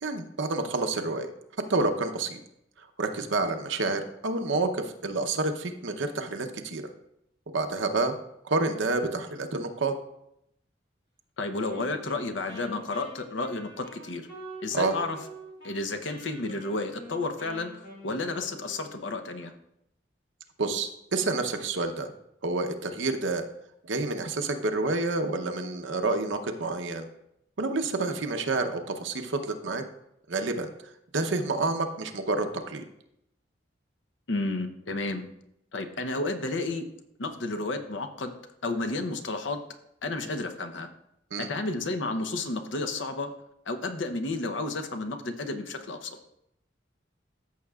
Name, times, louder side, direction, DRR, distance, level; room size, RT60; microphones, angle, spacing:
voice 1, 0.0-1.3 1.7-2.4 3.0-6.8 7.5-8.1 8.5-9.9 14.7-14.9 20.6-22.1 22.4-23.4 23.9-27.1 27.6-29.8 30.3-30.7 31.1-32.8 41.3-41.5, right 3 dB, 75° right, 6 dB, 0.8 m, -28 dB
voice 2, 11.4-14.3 14.6-15.2 15.6-19.5 34.3-35.2 35.7-36.8 37.2-38.4 38.6-39.6 40.0-40.9 41.4-43.3 43.7-46.2, left 2 dB, 75° left, 6 dB, 0.8 m, -32 dB
Wind instrument woodwind instrument, 11.6-15.8 16.0-19.0, equal, 50° left, 2.6 m, -46 dB
14.0 x 6.4 x 2.4 m, 0.80 s
head